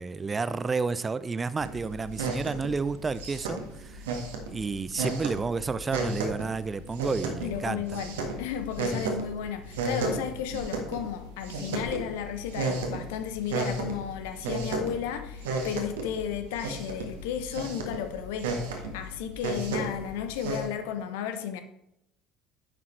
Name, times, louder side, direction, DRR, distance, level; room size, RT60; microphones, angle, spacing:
voice 1, 0.0-4.0 4.5-7.8 8.9-9.1, right 4 dB, 25° right, 15 dB, 0.4 m, -31 dB
bunny head petted, 1.6-20.6, right 3 dB, 70° right, 1.6 m, -34 dB
voice 2, 7.4-21.6, left 9 dB, 65° left, 8 dB, 0.9 m, -34 dB
10.5 x 7.2 x 3.3 m, 0.81 s
figure-of-eight pair, 60°, 0 cm